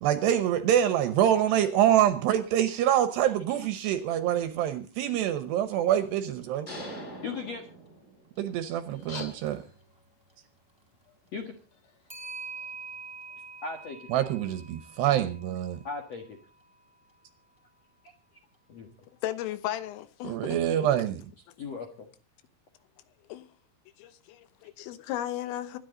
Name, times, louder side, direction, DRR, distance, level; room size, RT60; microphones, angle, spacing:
voice 1, 0.0-6.7 8.4-9.6 14.1-15.8 20.2-21.2, right 11 dB, 75° right, 2.7 m, -25 dB
Clock, 5.9-6.0 6.4-6.5 9.3-9.5 12.1-16.3, right 5 dB, 5° right, 2.6 m, -44 dB
sound 1, 6.7-8.5, equal, 15° left, 4.3 m, -42 dB
voice 2, 7.2-7.7 11.3-11.5 13.6-14.1 15.8-16.4 18.7-18.9 21.6-22.1, left 4 dB, 60° left, 1.7 m, -37 dB
sound 2, 8.9-13.9, left 5 dB, 45° left, 2.9 m, -49 dB
voice 3, 19.2-20.6 23.3-23.5 24.0-25.8, left 12 dB, 85° left, 3.7 m, -35 dB
25.0 x 10.0 x 3.9 m
omnidirectional pair, 5.8 m